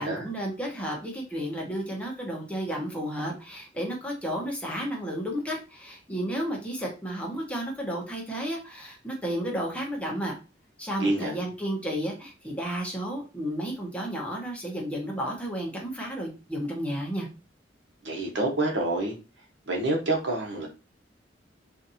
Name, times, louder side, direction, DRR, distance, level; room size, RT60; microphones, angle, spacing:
voice 1, 0.0-10.3 10.8-17.3, equal, 5° left, -1 dB, 0.9 m, -32 dB
voice 2, 11.0-11.3 18.0-19.1 19.7-20.7, right 2 dB, 75° right, 1 dB, 1.1 m, -27 dB
4.1 x 2.6 x 2.7 m, 0.30 s
head